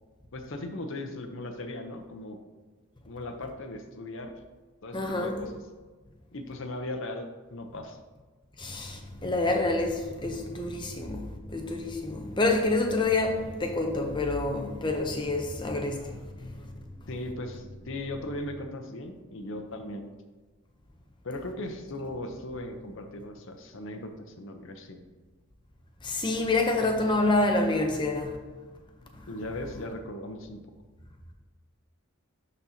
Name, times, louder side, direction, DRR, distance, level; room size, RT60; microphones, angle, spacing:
voice 1, 0.3-2.4 3.1-4.3 4.8-5.6 6.3-8.0 17.1-20.1 21.2-25.0 29.3-30.6, left 1 dB, 60° left, 0.8 m, -38 dB
voice 2, 4.9-5.4 8.6-11.2 11.5-16.0 16.4-16.5 26.0-28.3, left 2 dB, 20° left, 0.7 m, -27 dB
sound 1, 8.6-18.6, left 1 dB, 5° right, 1.0 m, -47 dB
12.0 x 4.2 x 2.8 m
head